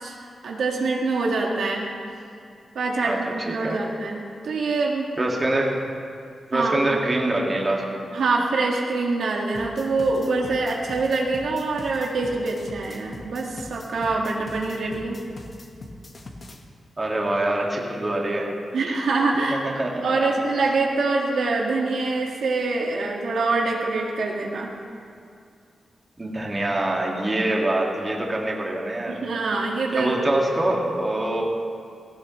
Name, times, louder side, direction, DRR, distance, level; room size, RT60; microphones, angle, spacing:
voice 1, 0.4-1.9 2.8-5.1 6.5-6.7 8.1-15.2 18.7-19.6 20.0-24.7 29.1-30.2, right 3 dB, 90° right, -1 dB, 1.8 m, -25 dB
voice 2, 3.0-3.8 5.2-5.8 6.5-8.0 17.0-18.5 19.5-20.3 26.2-29.2 29.9-31.4, right 1 dB, 25° right, -2 dB, 2.0 m, -25 dB
sound 1, 9.5-16.6, left 2 dB, 40° left, 1.3 m, -41 dB
17.5 x 16.5 x 3.2 m, 2.4 s
wide cardioid pair, 130°, 0 cm